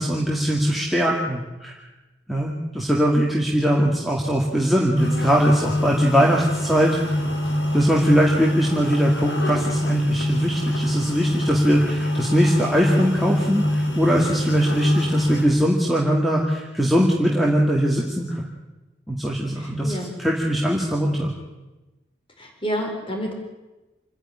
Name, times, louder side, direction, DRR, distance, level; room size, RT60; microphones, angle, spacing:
voice 1, 0.0-1.8 2.3-7.2 7.7-18.4 19.1-19.9 20.2-21.3, equal, ahead, -3 dB, 2.3 m, -21 dB
sound 1, 5.0-15.5, left 1 dB, 75° left, 3.9 m, -24 dB
voice 2, 19.6-20.1 22.4-23.3, equal, 30° left, 2 dB, 4.8 m, -29 dB
27.5 x 10.5 x 10.0 m, 1.1 s
head